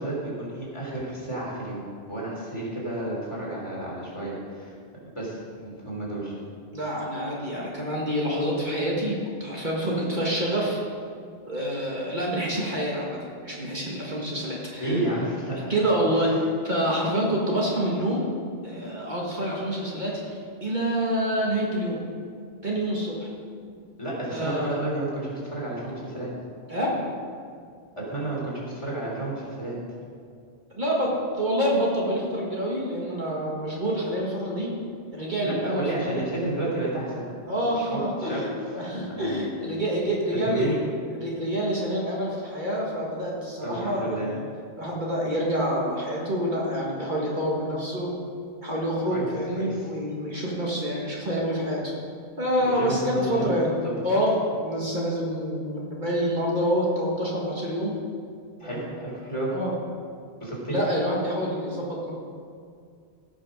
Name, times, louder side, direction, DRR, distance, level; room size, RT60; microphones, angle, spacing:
voice 1, 0.0-1.8 2.1-4.7 5.1-6.3 14.8-15.8 16.1-16.4 24.0-26.3 28.0-29.8 35.4-37.3 37.5-38.4 39.1-39.5 40.4-40.8 43.6-44.3 49.1-49.2 49.6-49.9 52.6-53.5 53.8-54.2 58.6-59.5 60.4-60.8, right 1 dB, 25° left, -6 dB, 3.7 m, -31 dB
voice 2, 6.7-10.8 11.5-13.2 13.4-15.0 15.7-16.3 16.6-18.3 18.6-20.3 20.6-22.0 22.6-23.3 24.3-24.8 26.7-27.1 30.7-34.7 35.1-36.2 37.5-40.7 41.1-44.4 44.8-48.1 48.6-51.8 52.4-53.8 54.0-57.9 58.6-58.8 59.5-59.7 60.7-62.1, equal, 45° right, -4 dB, 1.8 m, -27 dB
17.0 x 6.1 x 5.2 m, 2.2 s
omnidirectional pair, 1.1 m